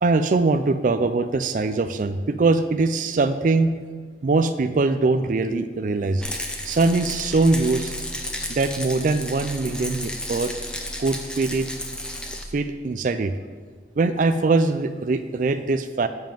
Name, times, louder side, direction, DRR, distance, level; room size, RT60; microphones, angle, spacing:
voice 1, 0.0-3.7 4.2-6.2 6.6-7.9 8.5-10.5 11.0-11.7 12.5-13.3 14.0-16.1, right 3 dB, 45° right, 10 dB, 0.4 m, -22 dB
Rattle, 6.2-12.4, left 1 dB, 5° left, 0.7 m, -33 dB
7.5 x 5.4 x 7.4 m, 1.5 s
head